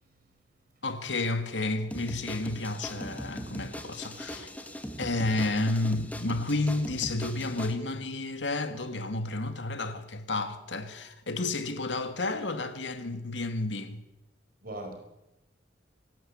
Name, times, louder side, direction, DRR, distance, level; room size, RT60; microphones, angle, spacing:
voice 1, 0.0-0.8 14.6-14.9, right 1 dB, 55° right, 5.2 m, -44 dB
voice 2, 0.8-4.5 5.0-14.0, left 2 dB, 80° left, 2.0 m, -31 dB
sound 1, 1.9-7.8, equal, 10° left, 1.9 m, -40 dB
27.0 x 12.0 x 8.6 m
head